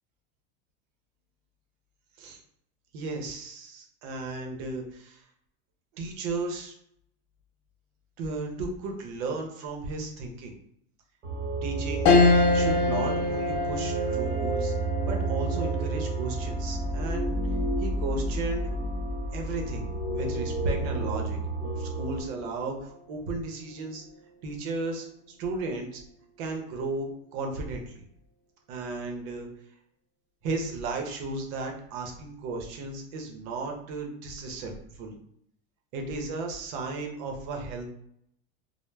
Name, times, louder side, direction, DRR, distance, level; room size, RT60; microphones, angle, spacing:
voice 1, 2.9-5.2 5.9-6.7 8.2-10.5 11.6-12.1 12.5-14.7 15.1-17.4 17.8-18.7 19.3-21.4 21.7-24.0 24.4-25.1 25.4-26.0 26.4-28.0 28.7-29.5 30.4-35.2 35.9-37.9, right 3 dB, 65° right, 2 dB, 0.7 m, -34 dB
sound 1, 11.2-22.2, right 2 dB, 30° right, 1.1 m, -31 dB
sound 2, 12.1-21.7 22.1-22.2 23.6-24.0, left 3 dB, 65° left, 0.6 m, -28 dB
2.0 x 2.0 x 3.2 m, 0.72 s
supercardioid pair, 120°, 33 cm